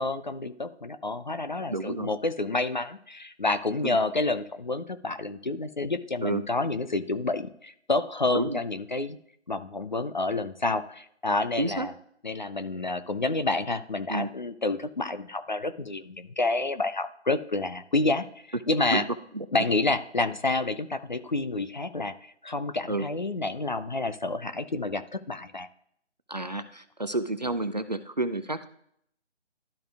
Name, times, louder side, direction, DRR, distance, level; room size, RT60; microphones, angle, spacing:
voice 1, 0.0-9.2 9.5-11.9 12.2-18.3 18.7-19.0 19.5-25.7, left 2 dB, 40° left, 10 dB, 0.5 m, -29 dB
voice 2, 1.7-2.1 3.8-4.0 6.2-6.4 8.3-8.6 11.6-11.9 14.1-14.3 18.9-19.0 19.3-19.5 22.9-23.0 26.3-28.7, right 2 dB, 40° right, 11 dB, 0.4 m, -30 dB
12.5 x 4.9 x 2.4 m, 0.68 s
figure-of-eight pair, 155°, 35 cm